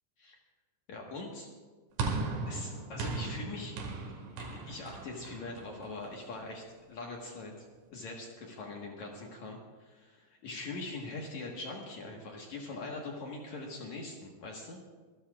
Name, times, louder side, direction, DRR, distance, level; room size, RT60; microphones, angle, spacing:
voice 1, 0.9-1.5 2.5-3.8 4.5-7.5 7.9-14.8, left 2 dB, 70° left, -1 dB, 1.8 m, -42 dB
sound 1, 2.0-6.4, right 3 dB, 75° right, 4.2 m, -37 dB
26.0 x 13.0 x 2.4 m, 1.4 s
omnidirectional pair, 5.4 m